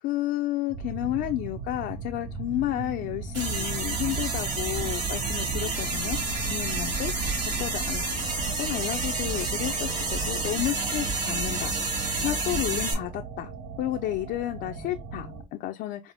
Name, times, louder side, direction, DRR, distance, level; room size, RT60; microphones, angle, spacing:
voice 1, 0.0-6.2 6.5-7.1 7.6-11.7 12.2-13.5 13.8-16.1, left 14 dB, 80° left, 0.4 m, -31 dB
Misty Limbo, 0.7-15.4, right 4 dB, 85° right, 1.0 m, -39 dB
sound 1, 3.3-12.9, right 3 dB, 45° right, 2.7 m, -29 dB
4.9 x 2.0 x 3.4 m
cardioid pair, 110°, 17 cm